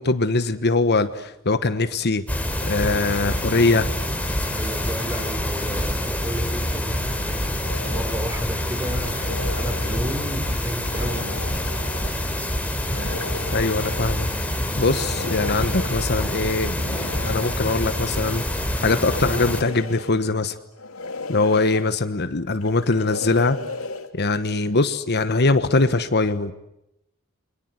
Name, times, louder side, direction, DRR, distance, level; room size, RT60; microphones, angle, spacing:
voice 1, 0.0-3.9 13.5-14.3 14.8-20.6 21.3-23.6 24.1-26.5, left 3 dB, 50° left, 11 dB, 1.3 m, -22 dB
sound 1, 2.3-19.6, left 1 dB, 5° left, 3.6 m, -26 dB
voice 2, 4.5-7.5 7.9-11.3, equal, 15° right, 8 dB, 4.5 m, -33 dB
sound 2, 7.6-8.3 9.0-10.3 10.8-12.1 12.8-14.0 14.7-16.1 16.8-18.1 18.7-20.2 20.7-21.8 22.5-24.1, left 3 dB, 90° left, 2.7 m, -35 dB
29.5 x 24.5 x 8.1 m, 0.83 s
head